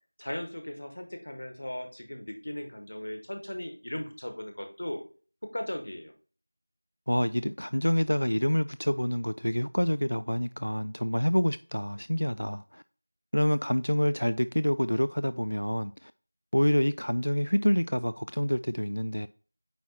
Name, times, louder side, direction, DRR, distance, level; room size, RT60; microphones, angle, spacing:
voice 1, 0.2-5.0 5.5-6.1, left 1 dB, 40° left, 1.2 m, -37 dB
voice 2, 7.1-12.8 13.3-16.1 16.5-19.3, equal, 80° left, 0.3 m, -27 dB
9.1 x 3.1 x 4.2 m
figure-of-eight pair, 180°, 0 cm